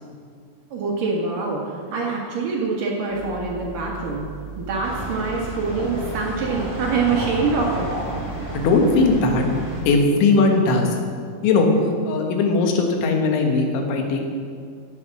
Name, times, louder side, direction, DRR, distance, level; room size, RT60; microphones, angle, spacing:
voice 1, 0.7-4.3 4.6-7.9, right 4 dB, 60° right, -2 dB, 2.7 m, -25 dB
sound 1, 3.1-9.9, right 7 dB, 25° left, 3.8 m, -38 dB
sound 2, 4.8-9.8, right 1 dB, 15° right, 3.6 m, -32 dB
voice 2, 8.5-9.6 9.9-11.0 11.4-11.7 12.1-14.3, left 3 dB, 80° left, 2 dB, 3.8 m, -19 dB
16.5 x 8.3 x 6.1 m, 2.1 s
omnidirectional pair, 5.4 m